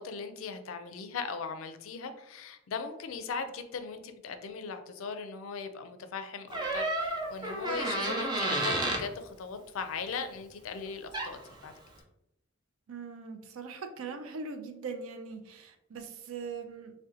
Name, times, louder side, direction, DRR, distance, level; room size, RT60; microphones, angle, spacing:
voice 1, 0.0-11.7, left 5 dB, 75° left, 9 dB, 0.4 m, -39 dB
Door, 6.5-9.1 10.9-11.0 11.1-11.5, right 2 dB, 20° right, 0.4 m, -31 dB
voice 2, 12.9-16.9, right 4 dB, 80° right, 7 dB, 0.4 m, -41 dB
2.7 x 2.1 x 3.7 m, 0.85 s
head